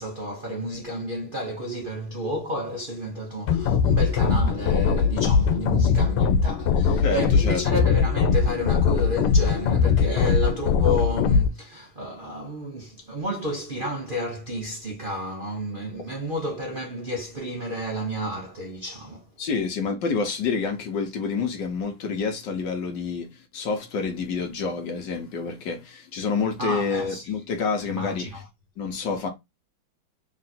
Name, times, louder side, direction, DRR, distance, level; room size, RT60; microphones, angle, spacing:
voice 1, 0.0-19.3 26.6-27.4 27.8-28.4, equal, 60° right, 0.5 m, -31 dB
sound 1, 3.5-11.5, left 6 dB, 90° left, 1.5 m, -21 dB
voice 2, 7.0-7.6 19.4-23.3 23.5-28.3 28.8-29.3, left 5 dB, 65° left, 1.3 m, -28 dB
3.7 x 2.5 x 4.1 m
omnidirectional pair, 2.4 m